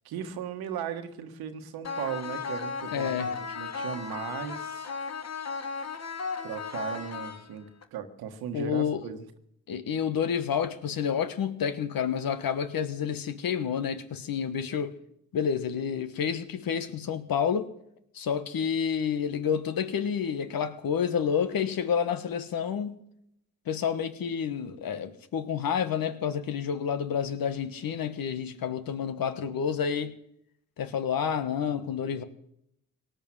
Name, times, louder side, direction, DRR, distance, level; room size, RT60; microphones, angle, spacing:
voice 1, 0.0-4.9 6.4-9.2, right 8 dB, 90° right, 1.4 m, -37 dB
sound 1, 1.8-7.8, left 5 dB, 45° left, 1.5 m, -35 dB
voice 2, 2.9-3.3 8.5-9.1 9.7-14.9 15.3-17.7 18.1-23.0 23.7-30.2 30.8-32.2, left 7 dB, 70° left, 1.4 m, -29 dB
18.0 x 10.5 x 7.5 m
supercardioid pair, 55°, 36 cm